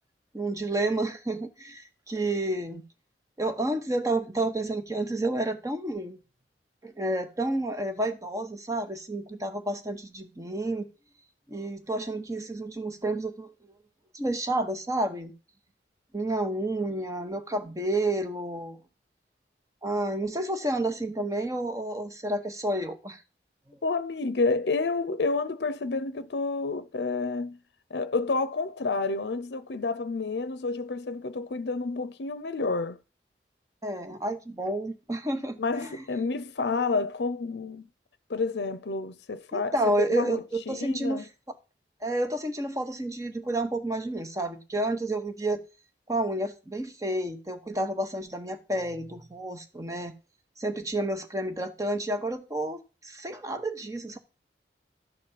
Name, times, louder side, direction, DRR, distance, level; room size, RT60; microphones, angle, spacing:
voice 1, 0.3-2.8 3.4-6.2 6.8-10.9 11.5-13.7 14.1-15.3 16.1-18.8 19.8-23.2 23.7-23.8 33.8-36.0 39.5-41.3 42.0-45.6 46.1-50.1 50.6-54.2, right 1 dB, 20° right, 1.1 m, -30 dB
voice 2, 23.8-27.6 27.9-33.0 35.6-37.9 38.3-41.2, left 3 dB, 75° left, 0.6 m, -29 dB
12.0 x 4.2 x 7.4 m
head